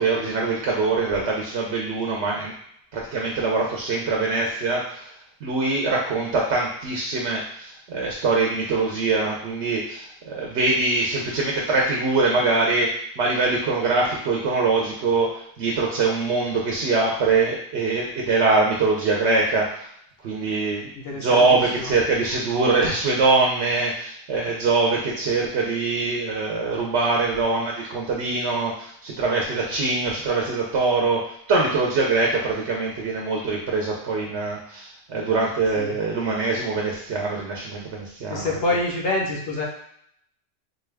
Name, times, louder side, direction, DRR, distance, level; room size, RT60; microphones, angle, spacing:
voice 1, 0.0-2.5 2.9-5.1 5.4-19.9 20.2-38.5, right 3 dB, 85° right, -1 dB, 1.0 m, -23 dB
voice 2, 21.0-21.9 35.8-35.9 38.3-39.6, left 2 dB, 65° left, -1 dB, 1.0 m, -26 dB
4.0 x 2.3 x 3.3 m, 0.70 s
omnidirectional pair, 1.1 m